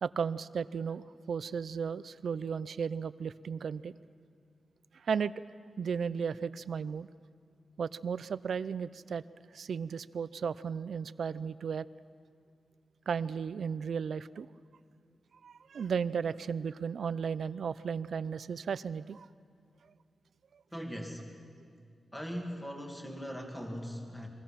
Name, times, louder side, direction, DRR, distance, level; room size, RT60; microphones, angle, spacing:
voice 1, 0.0-3.9 4.9-5.3 5.8-7.1 7.8-9.2 9.5-11.9 13.1-14.5 15.4-19.3, right 6 dB, 65° right, 16 dB, 0.5 m, -35 dB
voice 2, 20.7-21.2 22.1-24.3, equal, 5° left, 1 dB, 2.4 m, -40 dB
30.0 x 22.5 x 5.8 m, 2.3 s
wide cardioid pair, 155°, 0 cm